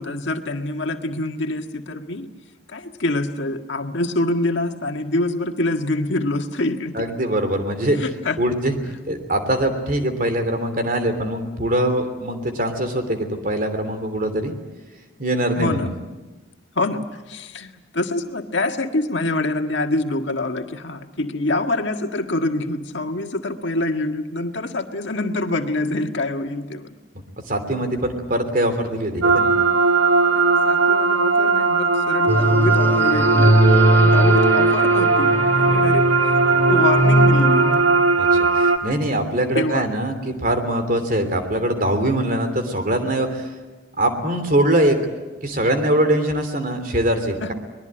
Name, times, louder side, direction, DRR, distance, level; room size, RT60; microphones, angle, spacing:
voice 1, 0.0-2.3 2.7-6.9 8.0-8.4 15.5-15.9 16.8-26.9 30.3-36.1 36.6-37.8 39.6-39.9 47.4-47.5, left 2 dB, 70° left, 5 dB, 1.7 m, -25 dB
voice 2, 6.9-8.0 8.4-8.8 9.1-14.5 15.2-15.9 27.5-29.5 38.2-43.5 44.0-45.0 45.4-47.5, right 1 dB, 45° right, 7 dB, 3.1 m, -22 dB
sound 1, 29.2-38.8, right 4 dB, 85° right, 2.1 m, -18 dB
sound 2, 32.3-37.8, equal, 10° left, 2.4 m, -19 dB
24.0 x 20.5 x 8.9 m, 1.2 s
head